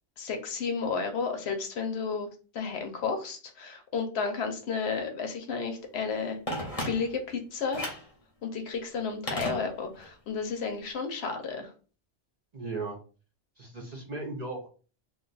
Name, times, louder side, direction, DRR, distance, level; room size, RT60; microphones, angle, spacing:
voice 1, 0.2-2.3 2.5-6.4 6.9-7.9 8.4-11.7, left 5 dB, 65° left, 5 dB, 0.9 m, -32 dB
Telephone, 6.5-7.3 7.7-8.1 9.3-10.1 10.4-10.5, left 1 dB, 35° left, 0.8 m, -35 dB
voice 2, 12.5-13.0 13.6-14.7, right 3 dB, 45° right, -1 dB, 0.6 m, -36 dB
2.4 x 2.3 x 3.9 m, 0.37 s
omnidirectional pair, 1.2 m